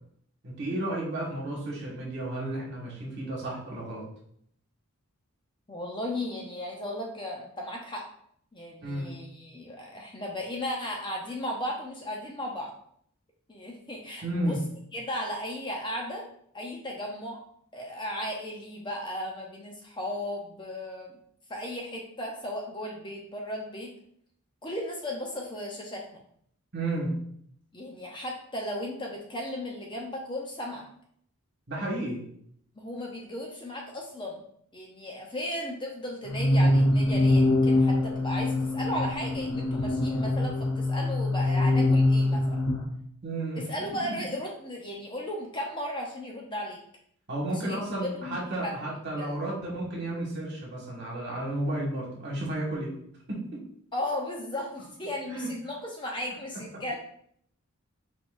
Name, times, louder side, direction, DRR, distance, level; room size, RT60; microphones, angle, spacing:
voice 1, 0.4-4.0 8.8-9.2 14.2-14.6 26.7-27.2 31.7-32.2 43.2-43.6 47.3-52.9 53.3-53.6 55.3-55.5, right 1 dB, 50° right, -4 dB, 1.7 m, -32 dB
voice 2, 5.7-8.1 8.5-12.7 13.5-14.6 14.9-16.2 16.5-17.4 17.7-21.1 21.5-23.9 24.6-26.2 27.7-30.9 32.8-34.4 34.7-42.6 43.6-46.8 47.5-48.8 49.2-49.3 53.9-57.0, left 1 dB, 20° left, -1 dB, 0.6 m, -35 dB
sound 1, 36.2-42.9, left 2 dB, 85° left, 0.7 m, -24 dB
4.6 x 4.1 x 2.5 m, 0.66 s
head